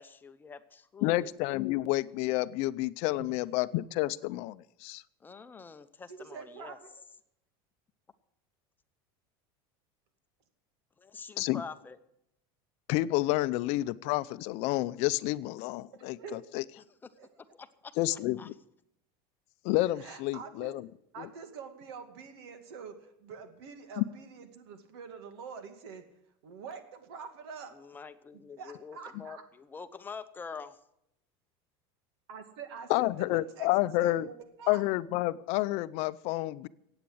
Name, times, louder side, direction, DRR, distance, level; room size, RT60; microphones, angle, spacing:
voice 1, 0.0-1.3 5.2-6.8 11.0-12.0 16.8-17.9 18.4-18.5 27.7-30.8, left 5 dB, 15° left, 10 dB, 0.8 m, -46 dB
voice 2, 1.0-5.0 11.4-11.6 12.9-16.6 18.0-18.5 19.6-20.9 21.2-21.3 24.0-24.1 32.9-34.3 34.7-36.7, left 18 dB, 55° left, 16 dB, 0.6 m, -29 dB
voice 3, 6.1-6.9 16.2-16.4 17.2-17.3 20.0-20.7 21.1-26.0 26.4-27.8 28.6-29.4 32.3-34.8, right 6 dB, 85° right, 7 dB, 2.3 m, -45 dB
15.5 x 8.9 x 7.9 m, 0.78 s
supercardioid pair, 150°, 13 cm